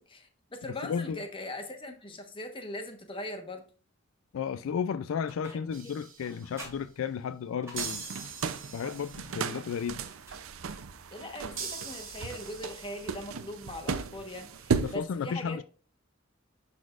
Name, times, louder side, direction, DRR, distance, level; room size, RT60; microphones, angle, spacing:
voice 1, 0.1-3.6 5.5-5.9 11.1-15.6, left 1 dB, 25° left, 1.1 m, -41 dB
voice 2, 0.8-1.2 4.3-8.0 8.7-10.0 14.8-15.6, left 7 dB, 75° left, 0.3 m, -33 dB
sound 1, 5.3-5.8 6.2-8.3 10.0-10.9, right 1 dB, 15° right, 3.4 m, -50 dB
sound 2, 5.7-6.6 7.8-9.7 11.6-13.5, right 5 dB, 65° right, 2.4 m, -42 dB
sound 3, 7.7-14.9, right 5 dB, 80° right, 0.6 m, -36 dB
10.5 x 4.2 x 2.4 m
head